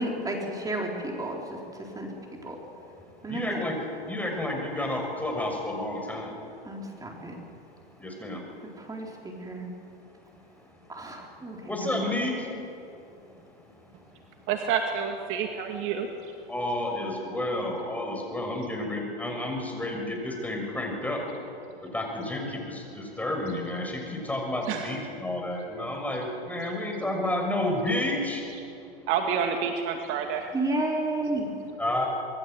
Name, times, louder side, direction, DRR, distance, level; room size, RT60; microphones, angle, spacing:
voice 1, 0.0-2.1 2.4-2.6 3.2-3.6 6.6-7.4 8.9-9.7 10.9-12.2 30.5-31.5, right 2 dB, 10° right, 0 dB, 4.3 m, -32 dB
voice 2, 3.3-3.7 4.1-6.3 8.0-8.4 11.7-12.3 16.5-21.2 21.9-28.4 31.8-32.1, left 1 dB, 5° left, 1 dB, 6.7 m, -30 dB
voice 3, 14.5-16.1 24.7-25.0 29.1-30.5, right 7 dB, 40° right, 4 dB, 2.2 m, -28 dB
26.0 x 21.5 x 8.0 m, 2.7 s
hypercardioid pair, 110°, 31 cm